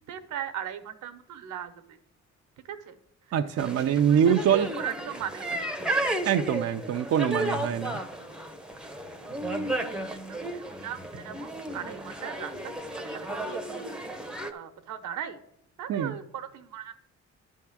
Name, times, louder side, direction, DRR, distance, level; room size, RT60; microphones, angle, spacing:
voice 1, 0.1-2.0 2.6-3.0 3.3-5.8 9.6-9.7 10.0-12.6 12.9-14.0 14.5-15.4 15.8-17.0, right 9 dB, 80° right, 9 dB, 0.9 m, -38 dB
voice 2, 3.3-4.7 6.3-8.0 15.9-16.1, right 8 dB, 55° right, 5 dB, 0.5 m, -24 dB
sound 1, 3.6-14.5, right 1 dB, 5° right, 0.8 m, -33 dB
10.5 x 3.6 x 7.2 m, 0.79 s
cardioid pair, 90°, 30 cm